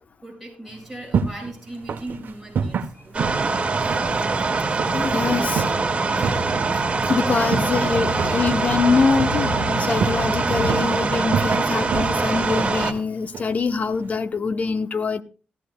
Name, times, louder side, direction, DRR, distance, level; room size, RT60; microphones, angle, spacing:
voice 1, 0.2-3.4, right 1 dB, ahead, 7.9 m, -38 dB
sound 1, 0.7-14.2, right 6 dB, 65° right, 1.0 m, -31 dB
sound 2, 3.1-12.9, right 3 dB, 35° right, 2.0 m, -23 dB
voice 2, 4.9-5.7 7.1-15.2, left 4 dB, 45° left, 1.0 m, -24 dB
sound 3, 6.0-10.9, left 3 dB, 80° left, 6.7 m, -33 dB
17.5 x 14.5 x 2.3 m
cardioid pair, 90°, 4 cm